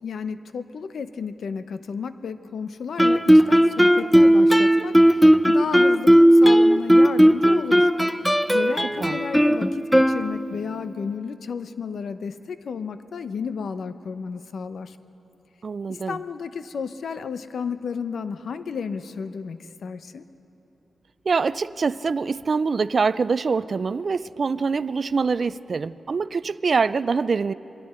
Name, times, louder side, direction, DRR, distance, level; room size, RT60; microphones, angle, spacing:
voice 1, 0.0-7.9 8.5-15.0 15.9-20.2, left 6 dB, 75° left, 11 dB, 0.8 m, -32 dB
Guitar, 3.0-10.7, equal, ahead, 0.6 m, -16 dB
voice 2, 15.6-16.2 21.3-27.5, right 5 dB, 55° right, 16 dB, 0.4 m, -24 dB
27.0 x 21.5 x 4.4 m, 3.0 s
cardioid pair, 85°, 0 cm